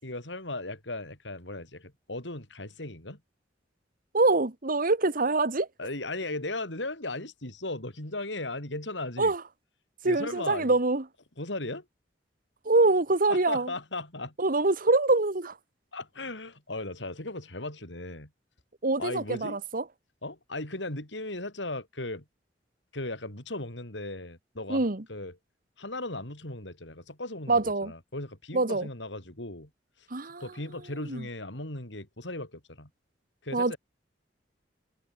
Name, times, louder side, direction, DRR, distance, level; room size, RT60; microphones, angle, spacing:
voice 1, 0.0-3.2 5.8-9.3 10.0-10.8 11.4-11.8 13.3-14.3 15.9-18.3 19.0-19.6 20.2-22.2 22.9-25.4 25.8-29.7 30.4-32.9 33.4-33.8, left 2 dB, 80° left, 6.1 m, -37 dB
voice 2, 4.1-5.7 9.2-9.4 10.0-11.0 12.6-13.7 14.4-15.5 18.8-19.8 24.7-25.0 27.5-27.9 28.5-28.9 30.1-30.4 31.1-31.3 33.5-33.7, right 2 dB, 50° right, 1.6 m, -25 dB
head